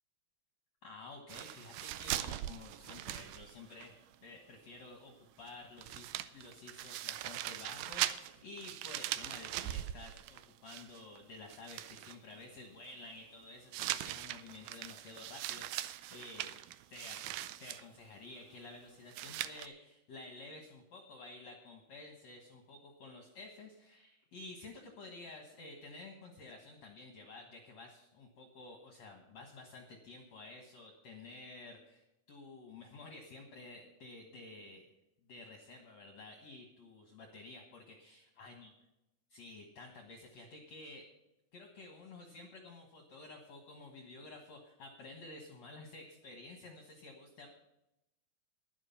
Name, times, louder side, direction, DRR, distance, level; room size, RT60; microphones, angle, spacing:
voice 1, 0.8-16.5 16.9-34.9 35.3-38.7 39.3-41.1 41.5-47.5, left 2 dB, 60° left, 2 dB, 2.0 m, -52 dB
sound 1, 1.3-3.9 4.1-4.2 5.5-5.6 5.8-11.2 11.5-12.2 13.7-17.8 19.1-19.7, right 14 dB, 80° right, 2.2 m, -40 dB
11.0 x 11.0 x 5.6 m, 0.90 s
omnidirectional pair, 4.7 m